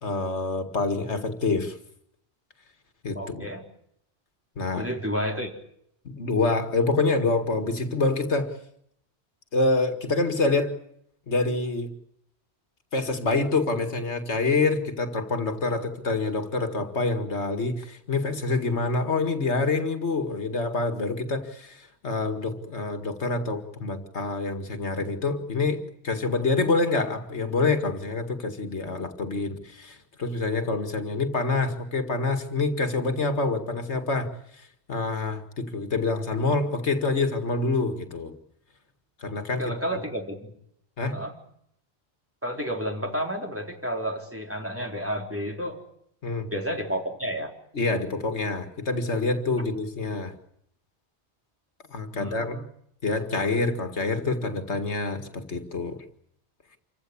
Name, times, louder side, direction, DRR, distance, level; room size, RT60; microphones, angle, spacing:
voice 1, 0.0-1.8 3.0-3.5 4.6-4.9 6.0-8.5 9.5-10.7 11.3-11.9 12.9-34.3 34.9-38.3 39.2-39.7 41.0-41.2 46.2-46.5 47.7-50.3 51.9-52.6 53.0-56.0, left 3 dB, 85° left, 7 dB, 2.3 m, -26 dB
voice 2, 3.2-3.6 4.8-5.5 39.6-40.5 41.1-41.3 42.4-45.8 46.5-47.5 52.1-52.6, equal, 10° right, 1 dB, 4.1 m, -31 dB
27.5 x 15.5 x 9.8 m, 0.72 s
omnidirectional pair, 1.1 m